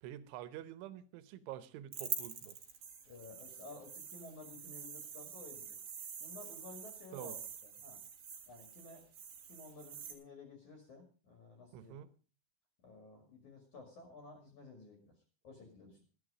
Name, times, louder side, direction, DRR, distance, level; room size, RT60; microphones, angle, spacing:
voice 1, 0.0-2.6 7.1-7.4 11.7-12.1, right 12 dB, 80° right, 14 dB, 3.3 m, -47 dB
sound 1, 1.9-10.1, right 7 dB, 50° right, 2.0 m, -46 dB
voice 2, 3.0-5.8 6.2-7.4 7.6-8.0 8.5-9.0 9.5-12.1 12.8-15.1 15.4-16.0, left 3 dB, 45° left, 3 dB, 3.1 m, -54 dB
14.0 x 11.0 x 4.9 m, 0.36 s
omnidirectional pair, 5.5 m